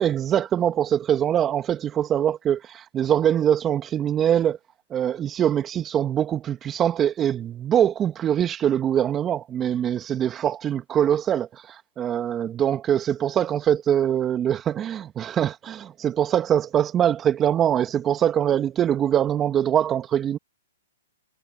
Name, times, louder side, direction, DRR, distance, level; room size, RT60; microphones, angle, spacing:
voice 1, 0.0-4.6 4.9-20.4, right 10 dB, 20° right, 1.8 m, -23 dB
hypercardioid pair, 125°, 0 cm